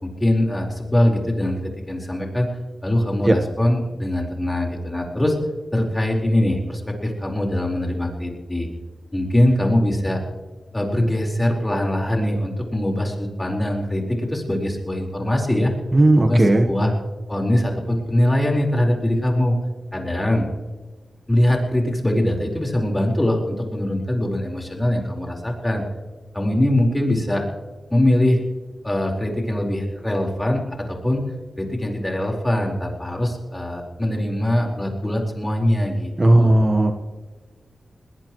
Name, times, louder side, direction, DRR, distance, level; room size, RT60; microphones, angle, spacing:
voice 1, 0.0-2.5 2.8-5.4 5.7-8.7 9.1-10.2 10.7-15.7 16.2-16.9 17.3-19.6 19.9-20.5 21.3-25.8 26.3-27.4 27.9-28.4 28.8-31.3 31.6-36.1 36.4-36.5, left 1 dB, 15° left, 0 dB, 4.4 m, -22 dB
voice 2, 15.9-16.9 36.2-36.9, right 1 dB, 25° right, 5 dB, 1.2 m, -15 dB
21.0 x 19.5 x 3.1 m, 1.3 s
wide cardioid pair, 90°, 0 cm